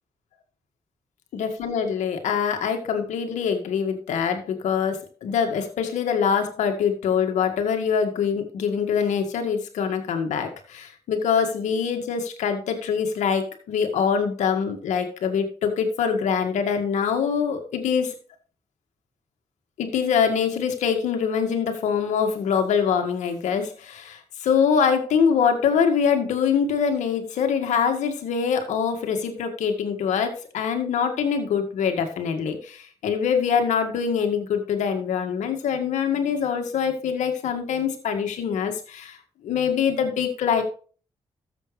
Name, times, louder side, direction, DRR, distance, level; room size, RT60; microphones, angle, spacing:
voice 1, 1.3-18.1 19.8-39.2 39.4-40.6, left 7 dB, 85° left, 5 dB, 1.8 m, -24 dB
13.0 x 7.8 x 3.3 m, 0.40 s
supercardioid pair, 50°, 12 cm